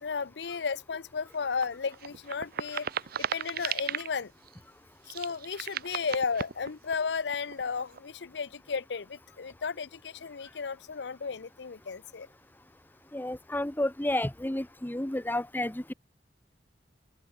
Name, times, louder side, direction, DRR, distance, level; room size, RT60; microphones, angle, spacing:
voice 1, 0.0-2.9 3.2-4.3 5.1-12.3, left 5 dB, 70° left, 0.6 m, -34 dB
sound 1, 1.3-4.1 4.5-4.6 5.1-7.0 7.3-8.0, right 8 dB, 55° right, 0.7 m, -36 dB
voice 2, 13.1-15.9, left 1 dB, 10° left, 0.9 m, -31 dB
open air
head